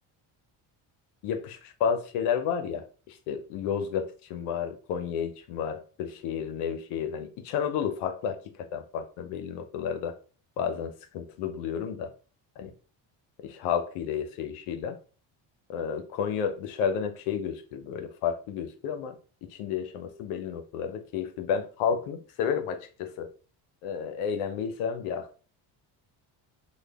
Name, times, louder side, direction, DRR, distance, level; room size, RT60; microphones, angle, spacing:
voice 1, 1.2-10.2 10.6-12.1 12.6-12.7 13.4-15.0 15.7-23.3 23.8-25.4, left 7 dB, 90° left, 0.7 m, -31 dB
3.2 x 2.2 x 3.4 m
supercardioid pair, 65°, 50 cm